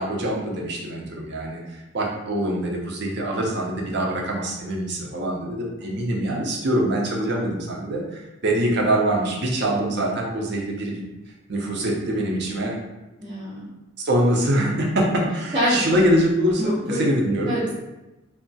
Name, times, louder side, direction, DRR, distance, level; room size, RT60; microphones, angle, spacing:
voice 1, 0.0-11.0 11.5-12.8 14.0-17.5, right 1 dB, 55° right, -1 dB, 0.6 m, -24 dB
voice 2, 13.2-13.7 15.5-15.9 16.6-17.0 17.4-17.7, equal, 20° right, -7 dB, 0.8 m, -25 dB
2.3 x 2.1 x 3.9 m, 1.0 s
head